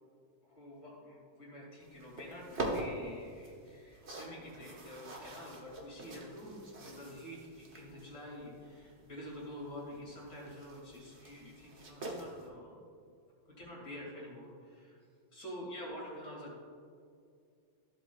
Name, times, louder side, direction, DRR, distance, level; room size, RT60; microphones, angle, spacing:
voice 1, 0.4-12.8 13.5-15.0 15.3-16.6, equal, 55° left, -4 dB, 2.7 m, -48 dB
sound 1, 1.8-12.5, right 1 dB, 40° right, 1.1 m, -45 dB
14.5 x 8.1 x 2.3 m, 2.3 s
omnidirectional pair, 2.2 m